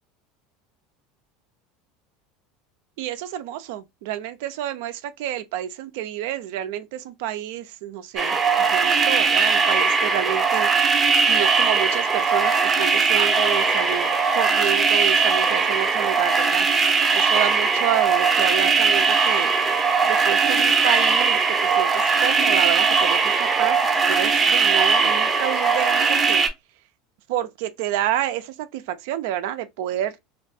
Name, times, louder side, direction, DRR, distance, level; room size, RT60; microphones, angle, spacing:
voice 1, 3.0-11.0 11.3-16.7 17.1-19.5 20.0-26.4 27.3-30.1, right 11 dB, 70° right, 0.3 m, -29 dB
sound 1, 8.2-26.5, right 5 dB, 20° right, 0.6 m, -20 dB
2.5 x 2.2 x 2.5 m
hypercardioid pair, 95°, 0 cm